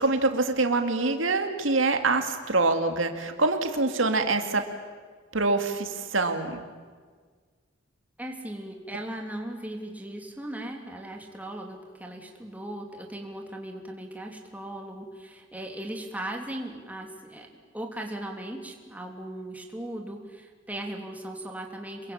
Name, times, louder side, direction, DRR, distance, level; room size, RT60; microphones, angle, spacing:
voice 1, 0.0-4.6 5.3-6.6, right 3 dB, 85° right, 6 dB, 2.4 m, -25 dB
voice 2, 8.2-17.5 17.7-22.1, right 1 dB, 10° right, 1 dB, 3.2 m, -38 dB
27.5 x 22.5 x 8.8 m, 1.5 s
head